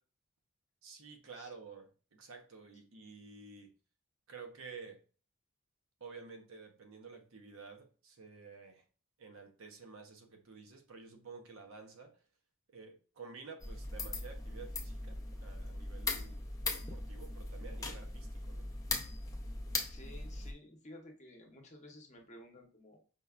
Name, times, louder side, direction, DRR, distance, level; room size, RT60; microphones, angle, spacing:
voice 1, 0.8-3.7 4.3-5.0 6.0-8.8 9.2-12.2 12.7-16.4 16.7-18.7, right 5 dB, 65° right, 0.7 m, -51 dB
sound 1, 13.6-20.5, left 3 dB, 15° left, 0.4 m, -39 dB
voice 2, 19.8-23.0, left 1 dB, 30° left, 0.8 m, -54 dB
5.1 x 2.2 x 2.3 m
head